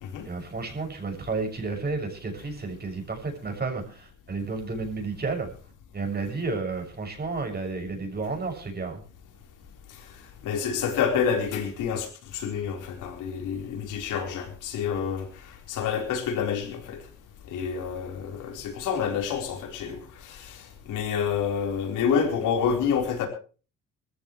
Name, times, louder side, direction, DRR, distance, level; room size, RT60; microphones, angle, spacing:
voice 1, 0.2-5.5 5.9-9.0, right 3 dB, 30° right, 6.7 m, -31 dB
voice 2, 10.4-17.0 17.5-20.6 20.9-23.3, left 7 dB, 90° left, 4.2 m, -28 dB
21.5 x 14.5 x 3.2 m
cardioid pair, 90°, 30 cm